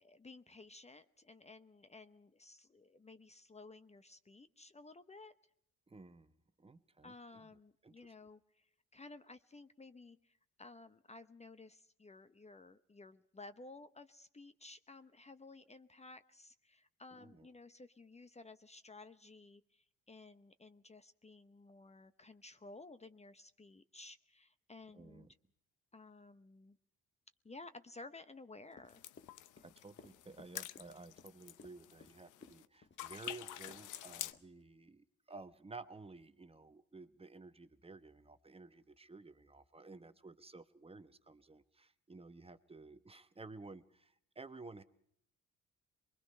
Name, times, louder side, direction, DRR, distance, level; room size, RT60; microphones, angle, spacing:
voice 1, 0.0-5.3 7.0-25.3 25.9-26.8 27.4-29.0, left 3 dB, 20° left, 12 dB, 0.8 m, -55 dB
voice 2, 5.9-7.5 7.8-8.3 17.2-17.5 24.9-25.3 29.6-44.8, right 3 dB, 20° right, 11 dB, 1.0 m, -54 dB
Run, 28.7-33.4 33.7-33.9 34.3-34.6, left 5 dB, 40° left, 1.5 m, -59 dB
sound 1, 28.9-32.7 33.0-34.3, left 13 dB, 80° left, 0.8 m, -48 dB
24.0 x 22.0 x 5.5 m, 0.69 s
cardioid pair, 90°, 30 cm